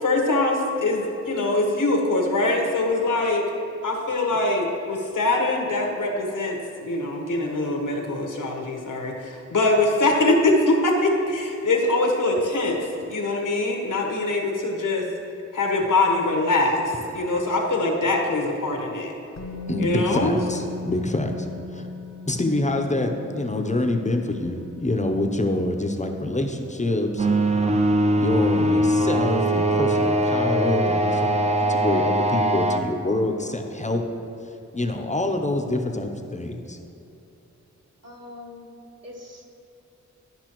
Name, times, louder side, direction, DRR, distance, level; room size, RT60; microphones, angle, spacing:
voice 1, 0.0-3.4 3.8-15.1 15.5-19.1 19.8-20.4, left 2 dB, 90° left, 1 dB, 1.2 m, -23 dB
Musical instrument, 19.4-27.3 27.5-27.7, left 3 dB, 60° left, 0.7 m, -38 dB
voice 2, 19.7-21.9 22.3-27.5 28.2-34.0 34.7-36.8, left 2 dB, 25° left, 4 dB, 0.6 m, -26 dB
sound 1, 27.2-32.8, right 1 dB, 20° right, 0.6 m, -21 dB
voice 3, 38.0-38.7 39.0-39.4, left 2 dB, 55° right, -3 dB, 1.6 m, -42 dB
12.0 x 5.5 x 3.0 m, 2.9 s
wide cardioid pair, 65°, 30 cm